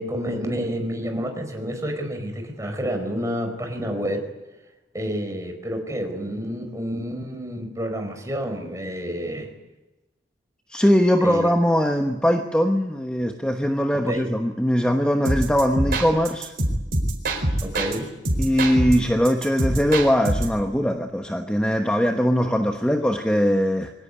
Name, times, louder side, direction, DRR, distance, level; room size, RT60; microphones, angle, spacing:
voice 1, 0.0-4.3 4.9-9.5 11.2-11.5 13.9-14.3 17.6-18.1, equal, 15° right, 4 dB, 4.7 m, -29 dB
voice 2, 10.7-16.5 18.4-23.9, equal, 5° left, 4 dB, 1.1 m, -21 dB
sound 1, 15.2-18.0 18.2-20.6, right 1 dB, 55° right, 4.3 m, -25 dB
23.5 x 17.5 x 9.8 m, 1.1 s
head